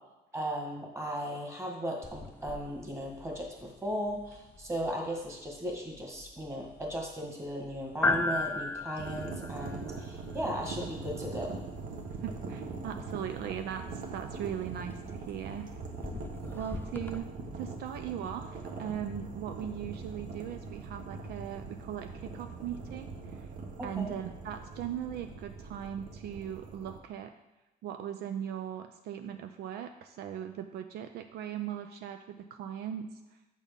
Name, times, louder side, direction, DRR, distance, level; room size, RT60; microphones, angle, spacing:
voice 1, 0.3-11.6 16.4-16.6 23.8-24.1, equal, 15° right, 0 dB, 1.8 m, -36 dB
sound 1, 2.0-17.2, left 3 dB, 10° left, 0.4 m, -39 dB
sound 2, 9.0-27.0, right 4 dB, 55° right, 1.1 m, -42 dB
voice 2, 12.2-15.7 16.5-17.3 17.5-23.5 23.8-27.3 27.8-33.1, right 9 dB, 70° right, 7 dB, 0.5 m, -39 dB
7.3 x 4.2 x 5.3 m, 1.0 s
cardioid pair, 110°, 17 cm